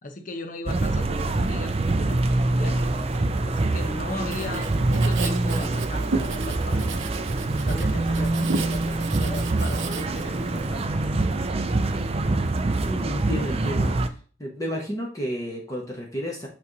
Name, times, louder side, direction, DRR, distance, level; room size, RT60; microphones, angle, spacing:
voice 1, 0.0-6.9 7.5-10.9 11.5-11.7, left 2 dB, 45° left, 7 dB, 0.9 m, -38 dB
sound 1, 0.7-14.1, right 2 dB, 35° right, 0.5 m, -25 dB
Writing, 4.2-10.7, right 4 dB, 75° right, 0.7 m, -34 dB
voice 2, 12.8-13.9 14.4-16.5, equal, 20° left, -2 dB, 1.1 m, -31 dB
8.3 x 3.2 x 4.0 m, 0.41 s
head